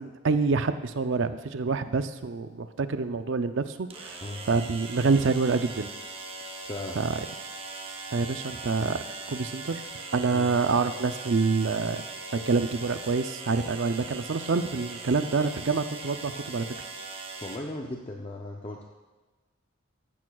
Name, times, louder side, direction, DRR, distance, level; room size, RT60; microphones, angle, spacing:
voice 1, 0.0-4.2 4.5-5.9 7.0-7.1 8.1-9.0 9.3-9.8 10.1-12.0 12.3-16.6, right 4 dB, 65° right, 10 dB, 0.5 m, -27 dB
sound 1, 1.9-2.0 3.9-17.6, right 3 dB, 25° right, 0.8 m, -40 dB
voice 2, 6.6-7.0 10.3-10.5 17.4-18.8, left 1 dB, 25° left, 0 dB, 0.6 m, -37 dB
14.5 x 10.5 x 2.4 m, 1.2 s
head